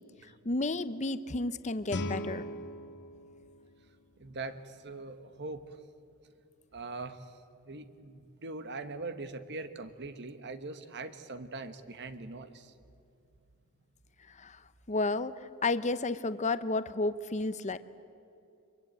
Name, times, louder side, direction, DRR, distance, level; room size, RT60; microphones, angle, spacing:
voice 1, 0.4-2.4 14.3-14.6 14.9-15.3 15.6-17.8, left 3 dB, 35° left, 13 dB, 0.8 m, -31 dB
Guitar, 1.9-4.7, left 1 dB, 55° left, 1.6 m, -40 dB
voice 2, 4.2-5.8 6.7-7.2 7.6-12.7, right 3 dB, 50° right, 10 dB, 1.4 m, -42 dB
24.5 x 22.5 x 9.1 m, 2.7 s
head